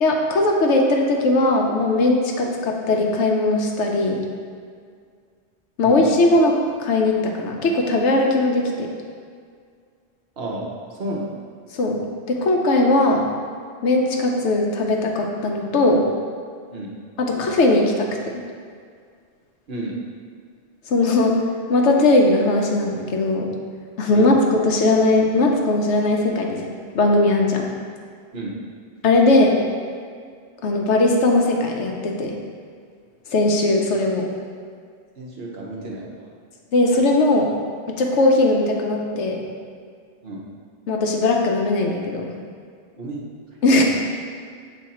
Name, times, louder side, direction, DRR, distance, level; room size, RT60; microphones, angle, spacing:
voice 1, 0.0-4.3 5.8-8.9 11.7-12.0 12.3-13.3 13.8-16.0 17.2-18.4 20.9-21.4 21.7-23.5 24.0-24.3 24.6-27.7 29.0-29.6 30.6-32.3 33.3-34.3 36.7-37.5 37.9-39.4 40.9-42.3 43.6-43.8, left 2 dB, 90° left, 1 dB, 1.1 m, -19 dB
voice 2, 10.4-10.7 11.0-11.3 16.7-16.9 19.7-19.9 24.1-24.3 28.3-28.5 35.2-36.2 40.2-40.4 42.9-43.2, right 1 dB, 65° right, -3 dB, 1.2 m, -31 dB
7.4 x 3.2 x 4.2 m, 2.1 s
omnidirectional pair, 1.1 m